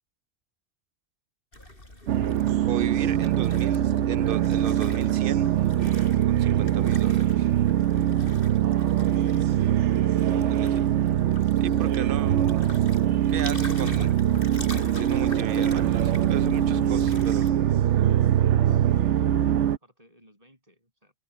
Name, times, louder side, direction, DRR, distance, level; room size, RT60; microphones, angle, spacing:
sound 1, 1.5-17.5, left 1 dB, 50° left, 6.7 m, -42 dB
sound 2, 2.1-19.8, right 11 dB, 90° right, 1.0 m, -23 dB
voice 1, 2.6-5.6 6.3-7.5 10.5-10.8 11.6-12.4 12.7-12.9 13.3-14.1 15.0-17.4, right 9 dB, 60° right, 0.7 m, -36 dB
voice 2, 19.0-21.1, equal, 30° right, 7.9 m, -59 dB
open air
omnidirectional pair, 1.2 m